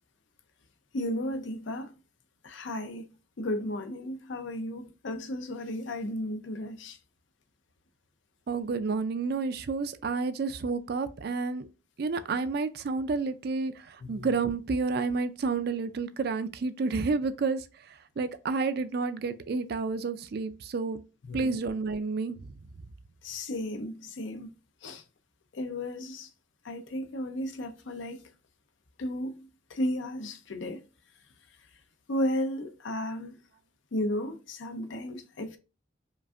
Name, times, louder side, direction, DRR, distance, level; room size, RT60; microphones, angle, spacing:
voice 1, 0.9-1.9 2.4-3.0 3.4-7.0 14.0-14.3 21.2-21.6 23.2-24.5 24.8-25.0 25.5-26.3 26.6-28.3 29.0-30.8 32.1-33.4 33.9-35.6, left 1 dB, 80° left, 0.6 m, -34 dB
voice 2, 8.5-11.7 12.0-17.6 18.2-21.0 21.3-22.4, right 4 dB, 55° right, 0.4 m, -30 dB
5.1 x 2.5 x 2.4 m
head